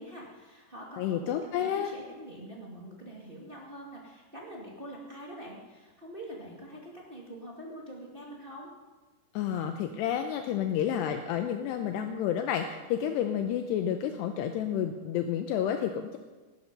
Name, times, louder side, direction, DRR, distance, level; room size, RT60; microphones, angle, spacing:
voice 1, 0.0-8.7, right 1 dB, 25° right, -3 dB, 1.2 m, -44 dB
voice 2, 1.0-1.9 9.3-16.2, left 9 dB, 80° left, 6 dB, 2.8 m, -30 dB
18.5 x 12.0 x 5.4 m, 1.3 s
omnidirectional pair, 5.2 m